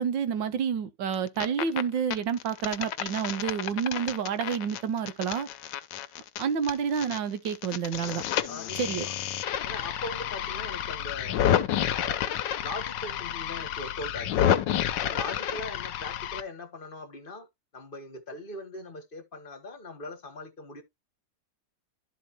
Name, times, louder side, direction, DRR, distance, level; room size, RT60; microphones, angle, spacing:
voice 1, 0.0-5.5 6.4-8.2 8.7-9.1, right 7 dB, 85° right, 1.7 m, -29 dB
sound 1, 1.1-1.8 2.1-7.2 7.4-16.4, left 10 dB, 75° left, 1.4 m, -30 dB
voice 2, 8.5-9.1 9.6-11.4 11.9-12.3 12.6-14.6 15.0-17.5 17.7-20.8, left 2 dB, 35° left, 1.2 m, -40 dB
12.0 x 4.3 x 2.9 m
omnidirectional pair, 2.0 m